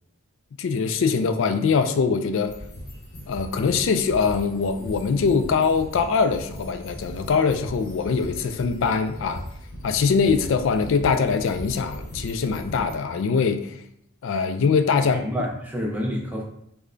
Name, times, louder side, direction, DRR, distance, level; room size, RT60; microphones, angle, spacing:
voice 1, 0.6-2.5 3.3-9.4 9.8-13.8 14.2-15.3, left 5 dB, 55° left, 8 dB, 0.3 m, -22 dB
sound 1, 2.4-12.9, equal, 40° left, 1.0 m, -39 dB
voice 2, 15.0-16.4, equal, 5° right, -1 dB, 0.5 m, -29 dB
3.3 x 2.1 x 3.7 m, 0.72 s
head